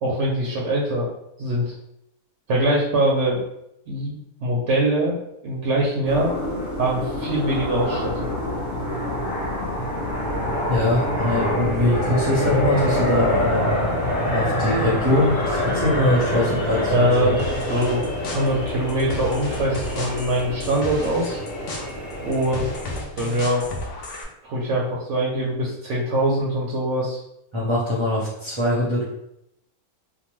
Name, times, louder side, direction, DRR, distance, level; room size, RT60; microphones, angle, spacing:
voice 1, 0.0-1.1 1.4-1.7 2.5-3.4 3.9-6.3 6.8-8.3 16.9-17.4 17.7-21.4 22.2-22.7 23.2-23.6 24.4-27.2, right 1 dB, 65° right, -3 dB, 0.8 m, -23 dB
sound 1, 6.0-23.0, left 1 dB, 40° left, 0.8 m, -26 dB
voice 2, 10.7-13.8 14.2-17.3 27.5-29.0, left 1 dB, 30° right, -8 dB, 0.5 m, -22 dB
sound 2, 17.4-24.2, left 2 dB, 70° left, 0.5 m, -34 dB
2.8 x 2.2 x 3.0 m, 0.81 s
omnidirectional pair, 1.6 m